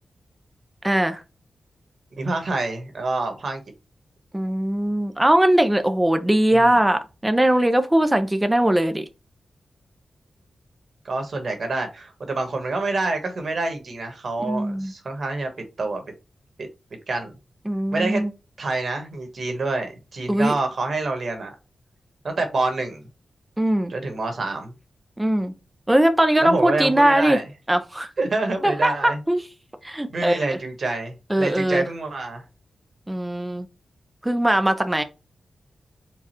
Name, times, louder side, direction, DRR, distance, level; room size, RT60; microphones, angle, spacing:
voice 1, 0.8-1.2 4.3-9.0 14.4-14.9 17.7-18.3 20.3-20.5 23.6-23.9 25.2-25.5 25.9-27.4 27.7-28.1 28.6-29.4 29.8-30.4 31.3-31.9 33.1-33.7 34.2-35.0, right 1 dB, 10° right, 0.5 m, -20 dB
voice 2, 2.1-3.6 6.5-6.7 11.0-15.5 15.8-16.0 17.1-17.3 17.9-18.2 18.6-21.5 22.2-23.1 23.9-24.7 26.4-27.5 28.2-29.2 30.1-32.4, right 3 dB, 55° right, 1.3 m, -27 dB
4.7 x 2.4 x 4.3 m
wide cardioid pair, 120°, 0 cm